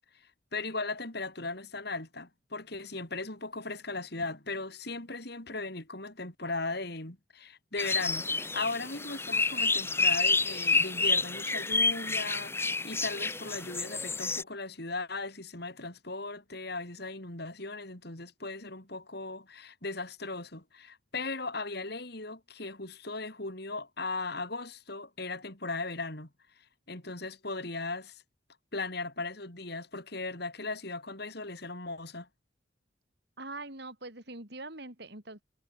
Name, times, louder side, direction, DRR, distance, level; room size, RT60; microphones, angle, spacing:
voice 1, 0.5-26.3 26.9-28.2 28.7-32.3, left 3 dB, 55° left, 3.7 m, -37 dB
sound 1, 7.8-14.4, left 3 dB, 10° left, 1.5 m, -29 dB
voice 2, 33.4-35.4, right 2 dB, 55° right, 5.2 m, -43 dB
head